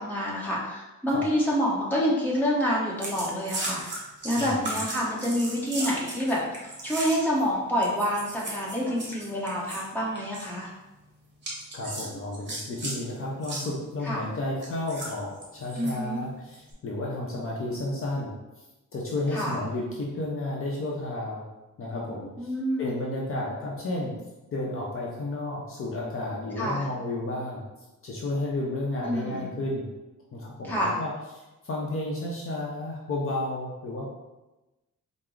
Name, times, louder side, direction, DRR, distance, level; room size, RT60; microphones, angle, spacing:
voice 1, 0.0-4.0 4.2-10.7 14.0-14.2 15.8-16.2 19.3-19.6 22.4-22.9 26.6-26.8 29.0-29.5 30.6-31.0, equal, 5° left, -5 dB, 0.9 m, -27 dB
sound 1, 3.0-7.4 7.8-9.9 10.1-10.5 11.4-13.0 13.4-13.7 14.6-15.9 16.5-16.7, right 2 dB, 35° right, 1.0 m, -36 dB
voice 2, 4.4-4.7 11.7-18.6 18.9-21.5 21.8-22.5 22.8-24.1 24.5-27.6 28.0-29.9 30.3-34.0, left 2 dB, 45° left, -3 dB, 0.6 m, -32 dB
4.4 x 2.0 x 3.7 m, 1.0 s
wide cardioid pair, 145°, 31 cm